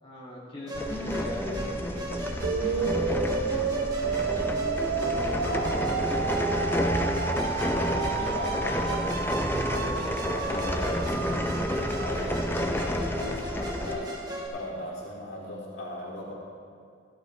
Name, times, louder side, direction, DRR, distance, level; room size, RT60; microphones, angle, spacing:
voice 1, 0.0-4.0, left 1 dB, 30° left, -7 dB, 2.3 m, -41 dB
sound 1, 0.7-13.9, left 1 dB, 10° left, 0.6 m, -30 dB
Musical instrument, 0.7-14.5, equal, 20° right, 1.6 m, -36 dB
sound 2, 2.4-12.4, right 6 dB, 85° right, 0.5 m, -32 dB
voice 2, 5.4-7.2 7.6-14.1 14.5-16.3, left 1 dB, 75° left, -5 dB, 2.9 m, -37 dB
15.0 x 12.5 x 3.3 m, 2.3 s
head